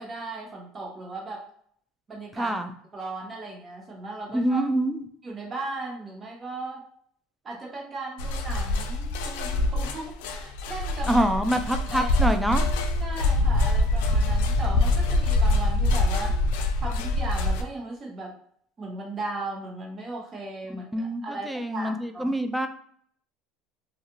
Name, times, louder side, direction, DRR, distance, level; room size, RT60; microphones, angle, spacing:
voice 1, 0.0-1.4 2.1-2.5 2.9-4.7 5.2-6.8 7.4-11.2 11.9-12.4 13.0-16.4 16.8-18.4 18.8-22.4, right 2 dB, 25° right, -1 dB, 1.0 m, -37 dB
voice 2, 2.4-2.7 4.3-5.0 11.1-12.6 20.9-22.7, right 1 dB, 5° right, 7 dB, 0.3 m, -25 dB
sound 1, 8.2-17.6, left 2 dB, 80° left, 0.3 m, -24 dB
2.4 x 2.3 x 2.9 m, 0.62 s
supercardioid pair, 120°, 0 cm